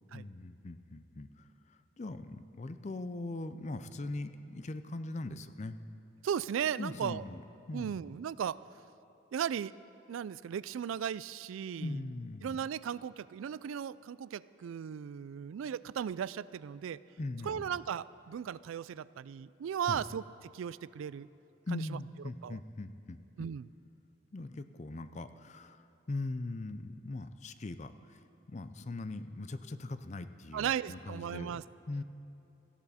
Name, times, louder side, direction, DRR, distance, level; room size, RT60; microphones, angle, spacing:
voice 1, 0.1-5.8 6.8-7.4 7.7-8.1 11.8-12.6 17.2-17.8 19.9-20.0 21.7-23.5 24.3-28.2 28.5-32.0, left 2 dB, 35° left, 11 dB, 0.5 m, -41 dB
voice 2, 6.2-7.2 7.7-8.6 9.3-9.7 10.1-11.9 12.4-17.0 17.4-20.2 20.5-21.3 21.7-22.0 22.4-22.6 23.4-23.7 30.5-31.6, right 8 dB, 80° right, 19 dB, 0.3 m, -36 dB
18.0 x 14.0 x 4.2 m, 2.9 s
head